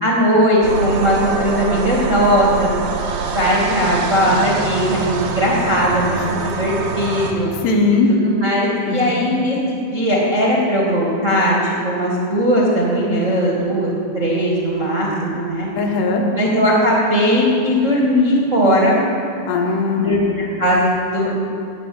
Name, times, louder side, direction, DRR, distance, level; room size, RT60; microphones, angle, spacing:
voice 1, 0.0-2.7 3.3-7.5 7.9-15.7 16.4-19.0 20.0-21.4, equal, 50° right, -4 dB, 0.9 m, -18 dB
sound 1, 0.6-7.3, right 5 dB, 85° right, 3.5 m, -25 dB
voice 2, 7.6-8.1 8.9-9.1 15.7-16.2 19.5-20.2, left 4 dB, 75° left, 1 dB, 3.3 m, -19 dB
17.0 x 5.8 x 9.5 m, 2.4 s
omnidirectional pair, 5.0 m